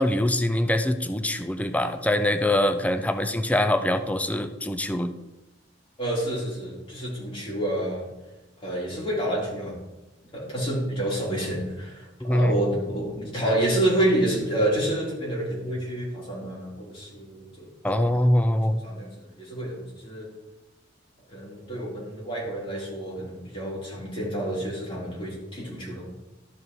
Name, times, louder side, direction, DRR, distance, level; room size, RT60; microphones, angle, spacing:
voice 1, 0.0-5.1 12.2-12.5 17.8-18.8, left 1 dB, 10° left, 8 dB, 0.5 m, -23 dB
voice 2, 6.0-8.1 8.6-9.8 10.3-17.6 18.8-20.3 21.3-26.1, right 1 dB, 30° left, -5 dB, 3.7 m, -28 dB
12.5 x 5.4 x 4.7 m, 1.0 s
head